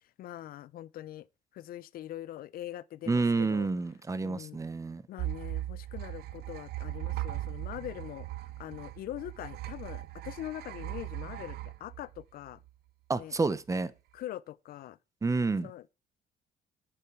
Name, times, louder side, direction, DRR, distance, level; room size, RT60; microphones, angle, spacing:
voice 1, 0.2-1.3 1.5-3.7 4.2-4.6 5.1-8.3 8.6-12.6 13.2-13.3 14.1-15.0 15.6-15.9, left 13 dB, 60° left, 0.5 m, -42 dB
voice 2, 3.1-5.0 13.1-13.9 15.2-15.7, right 3 dB, 20° right, 0.8 m, -29 dB
sound 1, 5.2-12.7, right 15 dB, 70° right, 0.6 m, -39 dB
10.0 x 6.8 x 4.5 m
cardioid pair, 110°, 17 cm